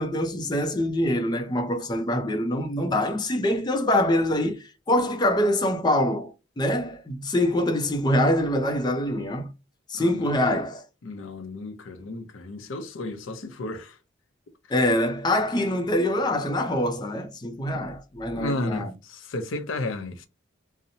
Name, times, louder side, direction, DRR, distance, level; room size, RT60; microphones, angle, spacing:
voice 1, 0.0-9.5 9.9-10.8 14.7-18.9, left 1 dB, 20° left, 0.4 m, -24 dB
voice 2, 9.9-10.3 11.0-14.0 17.7-17.9 18.3-20.3, left 2 dB, 85° left, 0.6 m, -33 dB
2.7 x 2.0 x 2.6 m
head